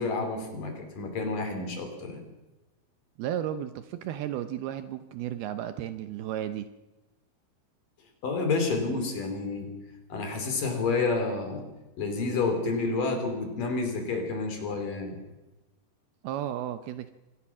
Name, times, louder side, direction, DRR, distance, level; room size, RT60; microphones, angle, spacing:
voice 1, 0.0-2.2 8.2-9.7 10.1-11.7 12.0-15.2, left 3 dB, 55° left, 5 dB, 4.7 m, -29 dB
voice 2, 3.2-6.7 16.2-17.1, right 11 dB, 75° right, 10 dB, 2.5 m, -33 dB
25.0 x 18.5 x 6.1 m, 1.1 s
omnidirectional pair, 5.0 m